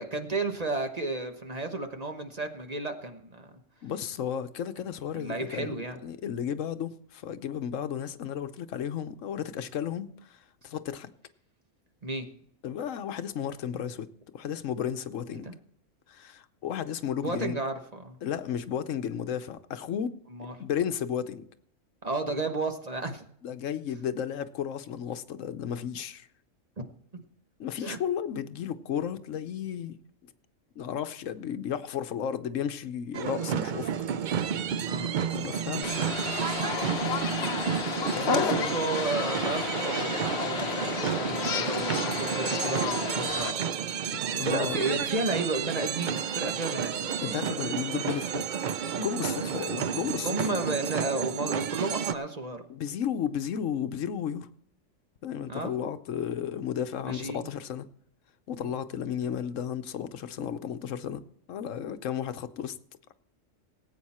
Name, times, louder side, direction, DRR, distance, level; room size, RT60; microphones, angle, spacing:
voice 1, 0.0-3.5 5.1-6.0 12.0-12.3 15.4-15.5 17.2-18.2 20.3-20.5 22.0-23.2 26.8-26.9 27.1-27.2 27.8-28.0 34.9-35.1 36.9-37.2 37.6-37.7 38.3-47.2 49.6-49.7 50.2-52.6 55.5-55.7 57.0-57.5 58.6-58.7, right 2 dB, 35° right, 1.2 m, -33 dB
voice 2, 3.8-11.1 12.6-14.1 14.3-15.5 16.1-17.6 18.2-20.2 20.6-21.5 23.4-26.3 27.6-29.9 30.2-30.3 30.8-33.9 35.3-36.0 38.1-38.7 44.1-44.9 47.2-48.5 49.0-50.5 52.7-54.5 55.2-57.9 58.5-61.2 61.5-62.8, left 8 dB, 85° left, 1.1 m, -33 dB
sound 1, 33.1-52.1, right 7 dB, 55° right, 0.5 m, -31 dB
sound 2, 35.8-43.5, left 6 dB, 60° left, 1.1 m, -32 dB
18.0 x 8.7 x 4.3 m
omnidirectional pair, 1.3 m